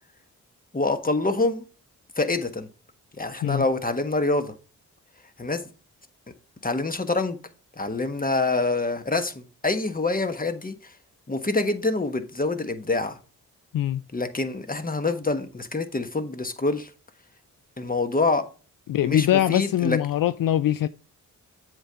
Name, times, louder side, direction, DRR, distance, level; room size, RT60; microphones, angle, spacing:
voice 1, 0.7-1.6 2.2-2.7 3.2-4.5 5.4-5.6 6.6-7.4 7.8-10.9 11.3-13.2 14.1-16.9 17.8-18.4 19.0-20.0, left 3 dB, 25° left, 1.3 m, -26 dB
voice 2, 18.9-20.9, left 12 dB, 65° left, 0.5 m, -22 dB
7.8 x 3.9 x 5.7 m
supercardioid pair, 40°, 37 cm